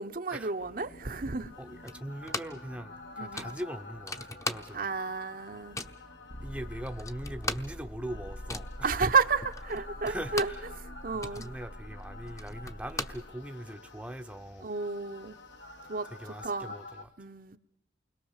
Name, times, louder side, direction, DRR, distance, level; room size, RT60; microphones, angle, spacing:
voice 1, 0.0-1.5 3.2-3.6 4.7-5.8 8.8-10.5 10.8-11.5 14.6-15.4 15.9-16.1 16.4-16.8 17.2-17.6, right 4 dB, 50° right, 1.0 m, -31 dB
sound 1, 0.6-17.1, left 1 dB, 75° left, 2.1 m, -46 dB
voice 2, 1.6-4.9 6.4-9.0 10.1-10.7 11.1-14.7 16.1-17.1, right 1 dB, 5° right, 0.9 m, -41 dB
sound 2, 1.9-2.7 3.0-3.1 3.4-5.0 5.3-6.1 6.6-6.7 6.9-10.7 11.0-13.8, left 2 dB, 15° left, 1.0 m, -39 dB
28.5 x 21.5 x 7.4 m
head